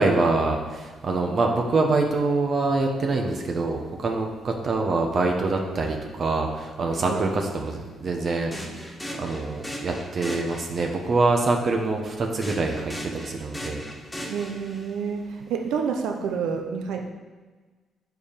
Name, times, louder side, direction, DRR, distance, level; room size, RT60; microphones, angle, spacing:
voice 1, 0.0-8.9 9.2-13.8 14.2-14.3, right 3 dB, 50° right, 2 dB, 1.0 m, -25 dB
sound 1, 6.9-7.1 8.5-11.0 12.4-15.0, equal, 5° left, 1.7 m, -37 dB
voice 2, 14.3-17.1, right 6 dB, 85° right, 4 dB, 0.7 m, -29 dB
8.2 x 5.0 x 5.2 m, 1.3 s
cardioid pair, 90°, 0 cm